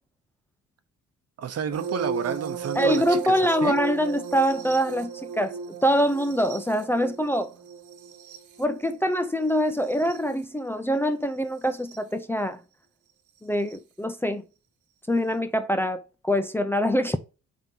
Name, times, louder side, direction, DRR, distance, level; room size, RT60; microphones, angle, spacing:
voice 1, 1.4-3.8, right 7 dB, 55° right, 1.0 m, -31 dB
sound 1, 1.7-10.4 11.7-12.0 13.7-13.8, right 5 dB, 80° right, 1.2 m, -35 dB
voice 2, 2.8-7.5 8.6-12.6 13.4-14.4 15.1-17.2, equal, 5° left, 0.6 m, -24 dB
8.8 x 3.7 x 2.9 m
cardioid pair, 90°, 30 cm